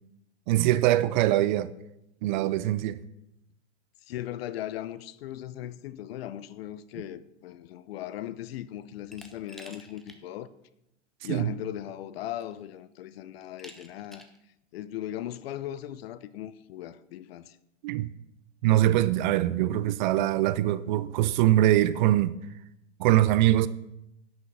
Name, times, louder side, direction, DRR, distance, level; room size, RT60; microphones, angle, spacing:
voice 1, 0.5-1.7 2.2-3.0 11.3-11.5 17.8-18.1 18.6-22.4 23.0-23.7, right 14 dB, 40° right, 0.5 m, -23 dB
voice 2, 4.0-10.5 11.2-14.3 14.7-17.6, left 12 dB, 55° left, 0.7 m, -38 dB
Glass, 9.1-10.2 10.6-10.7 11.8-11.9 12.4-12.8 13.6-14.4, equal, ahead, 0.7 m, -50 dB
10.5 x 6.5 x 5.5 m
hypercardioid pair, 115°, 35 cm